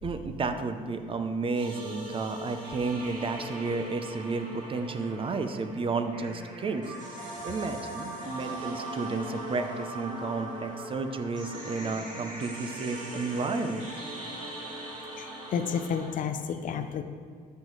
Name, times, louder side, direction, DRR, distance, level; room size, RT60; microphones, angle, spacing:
voice 1, 0.0-6.9 7.4-13.9, right 3 dB, 30° right, 8 dB, 0.6 m, -32 dB
sound 1, 1.5-16.1, right 1 dB, 45° right, 2.3 m, -40 dB
voice 2, 15.2-17.0, left 7 dB, 50° left, 9 dB, 0.6 m, -31 dB
12.5 x 5.7 x 3.1 m, 2.1 s
cardioid pair, 110°, 17 cm